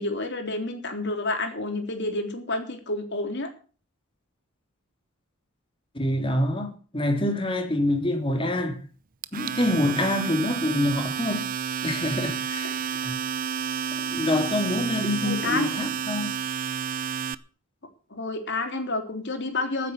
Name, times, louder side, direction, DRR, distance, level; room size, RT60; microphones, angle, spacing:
voice 1, 0.0-3.5 12.6-12.7 15.2-15.7 18.1-19.9, left 2 dB, 55° left, 3.6 m, -29 dB
voice 2, 6.0-8.8 9.3-11.5 11.8-12.8 13.0-13.2 14.0-16.4, left 1 dB, 25° left, 3.3 m, -26 dB
Domestic sounds home sounds, 9.2-17.3, right 7 dB, 40° right, 0.7 m, -30 dB
14.5 x 9.5 x 6.7 m
head